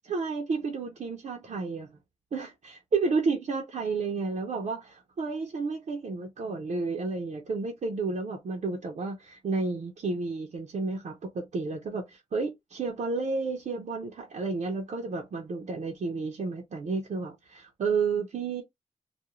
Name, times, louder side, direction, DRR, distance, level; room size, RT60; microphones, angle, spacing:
voice 1, 0.1-2.0 2.3-18.6, right 4 dB, 70° right, 0.6 m, -31 dB
2.4 x 2.2 x 3.0 m
wide cardioid pair, 85°, 13 cm